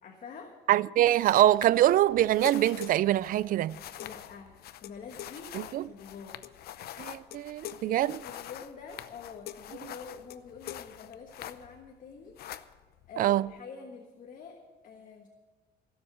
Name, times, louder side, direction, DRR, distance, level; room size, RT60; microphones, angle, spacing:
voice 1, 0.0-0.6 4.0-6.4 7.8-12.4 13.1-15.3, left 5 dB, 50° left, 1.5 m, -47 dB
voice 2, 0.7-3.8 5.5-5.8 7.0-8.2 13.2-13.5, right 13 dB, 55° right, 0.4 m, -24 dB
sound 1, 1.2-11.9 12.2-13.6, left 12 dB, 65° left, 0.6 m, -45 dB
16.5 x 7.3 x 8.1 m
cardioid pair, 110°, 17 cm